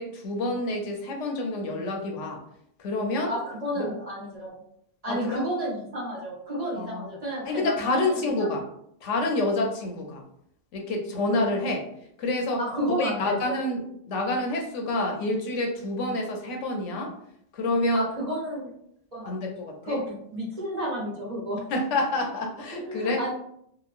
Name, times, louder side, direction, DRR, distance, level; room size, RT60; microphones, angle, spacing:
voice 1, 0.0-2.4 2.8-3.3 3.8-3.9 5.1-5.4 6.8-7.1 7.4-8.6 9.0-10.2 10.7-11.9 12.2-12.6 13.0-13.8 14.1-17.1 17.5-18.0 19.3-20.0 21.7-23.2, left 2 dB, 85° left, 2 dB, 1.0 m, -28 dB
voice 2, 3.3-4.5 5.0-8.5 11.3-11.5 12.6-13.6 17.9-18.7 19.1-19.3 19.8-21.6 22.7-23.3, equal, 40° right, -5 dB, 0.8 m, -31 dB
2.9 x 2.1 x 2.4 m, 0.70 s
omnidirectional pair, 1.2 m